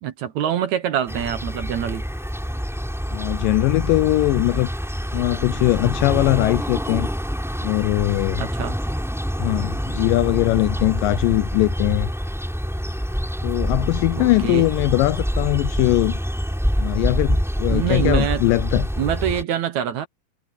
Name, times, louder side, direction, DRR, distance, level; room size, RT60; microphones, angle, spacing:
voice 1, 0.0-2.1 8.4-8.7 14.2-14.7 17.7-18.4 19.0-20.1, right 10 dB, 70° right, 1.8 m, -25 dB
sound 1, 1.1-19.4, equal, ahead, 5.8 m, -26 dB
voice 2, 3.1-4.7 5.1-7.1 7.6-8.4 9.4-12.1 13.4-16.2 16.8-18.9, left 19 dB, 85° left, 1.9 m, -21 dB
omnidirectional pair, 4.5 m